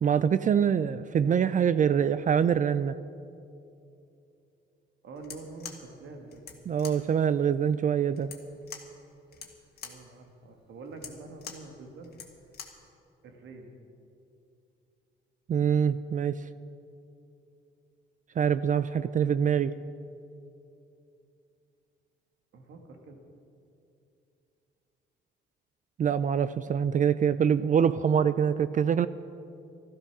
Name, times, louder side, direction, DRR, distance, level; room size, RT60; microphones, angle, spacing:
voice 1, 0.0-3.0 6.7-8.3 15.5-16.4 18.4-19.7 26.0-29.1, right 8 dB, 40° right, 14 dB, 0.4 m, -24 dB
voice 2, 5.0-6.5 9.8-12.2 13.2-13.7 22.5-23.2, right 3 dB, 70° right, 3 dB, 1.9 m, -46 dB
sound 1, 5.2-12.9, left 6 dB, 55° left, 1.7 m, -46 dB
13.5 x 12.5 x 6.1 m, 2.6 s
cardioid pair, 90°, 20 cm